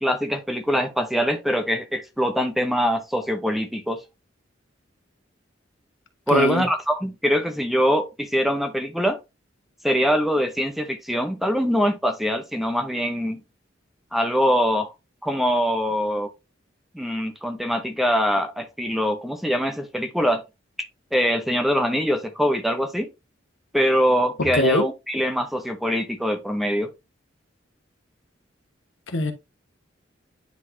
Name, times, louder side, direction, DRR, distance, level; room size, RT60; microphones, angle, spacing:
voice 1, 0.0-4.0 6.3-9.2 9.8-13.4 14.1-14.9 15.2-16.3 16.9-20.4 21.1-23.1 23.7-26.9, equal, ahead, 0.7 m, -23 dB
voice 2, 6.3-6.6 24.5-24.8 29.1-29.3, left 2 dB, 75° left, 1.1 m, -22 dB
9.5 x 4.1 x 2.7 m
head